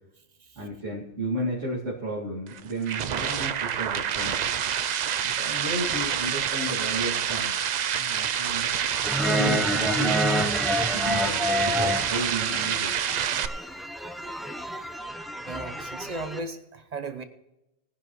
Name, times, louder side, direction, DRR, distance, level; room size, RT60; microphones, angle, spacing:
voice 1, 0.6-4.4 5.2-7.6 7.9-8.7 9.2-10.4 10.9-12.9, right 1 dB, 85° right, -7 dB, 2.6 m, -33 dB
sound 1, 2.5-13.5, right 9 dB, 60° right, 0.4 m, -27 dB
sound 2, 9.0-16.4, equal, ahead, 0.6 m, -29 dB
voice 2, 15.5-17.2, right 2 dB, 40° right, 8 dB, 0.9 m, -36 dB
19.5 x 10.5 x 3.1 m, 0.89 s
omnidirectional pair, 1.2 m